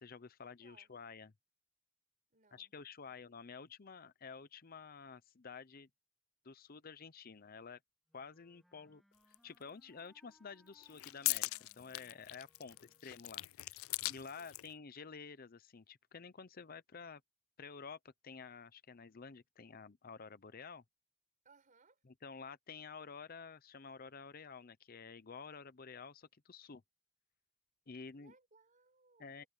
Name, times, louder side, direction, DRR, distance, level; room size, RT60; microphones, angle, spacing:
voice 1, 0.0-1.3 2.5-5.9 6.4-7.8 8.1-12.8 13.0-13.7 14.1-17.2 17.6-20.8 22.0-26.8 27.9-28.3 29.2-29.4, left 5 dB, 45° left, 0.7 m, -51 dB
voice 2, 0.6-0.9 2.3-2.7 12.6-13.0 14.3-14.6 21.4-22.0 28.1-29.5, right 4 dB, 40° right, 4.8 m, -68 dB
Wind instrument woodwind instrument, 8.1-13.4, equal, ahead, 2.7 m, -72 dB
sound 1, 9.3-9.4 10.7-14.7, left 21 dB, 85° left, 0.3 m, -40 dB
head